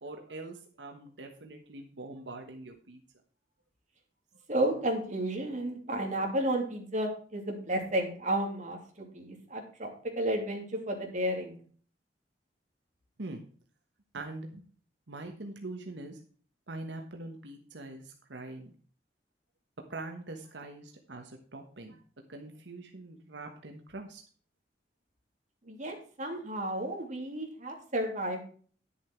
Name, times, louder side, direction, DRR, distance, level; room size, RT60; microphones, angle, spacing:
voice 1, 0.0-3.0 13.2-13.4 14.1-14.6 15.1-16.2 16.7-18.7 19.9-22.0 22.3-24.2, right 2 dB, 85° right, 3 dB, 1.3 m, -43 dB
voice 2, 4.5-11.6 25.6-28.4, right 1 dB, 45° right, 2 dB, 2.8 m, -32 dB
10.5 x 7.2 x 4.5 m, 0.43 s
head